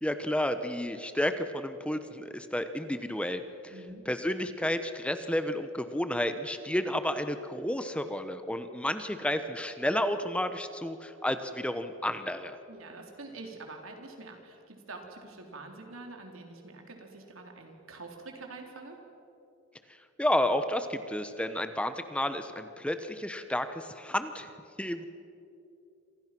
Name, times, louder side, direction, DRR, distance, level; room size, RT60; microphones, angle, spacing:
voice 1, 0.0-3.7 4.1-12.6 20.2-24.5 24.8-25.0, left 1 dB, 5° left, 9 dB, 1.0 m, -31 dB
voice 2, 3.7-4.0 12.7-19.0, right 3 dB, 85° right, 2 dB, 4.1 m, -46 dB
28.0 x 26.5 x 6.1 m, 2.8 s
head